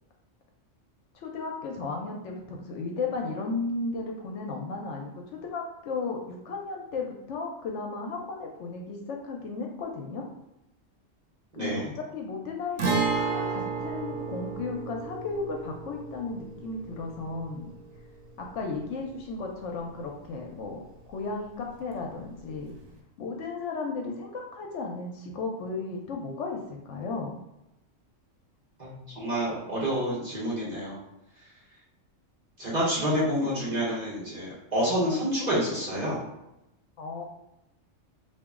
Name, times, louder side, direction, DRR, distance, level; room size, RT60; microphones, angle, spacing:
voice 1, 1.1-10.3 11.6-17.7 18.4-20.8 21.1-22.8 23.2-27.3 37.0-37.2, left 3 dB, 70° left, 1 dB, 0.9 m, -35 dB
voice 2, 11.5-11.9 28.8-31.0 32.6-36.3, equal, 35° right, -7 dB, 1.1 m, -28 dB
Guitar, 12.8-20.4 20.7-20.8 22.8-22.9, right 4 dB, 85° right, 1.0 m, -33 dB
2.9 x 2.5 x 3.5 m, 0.89 s
omnidirectional pair, 1.3 m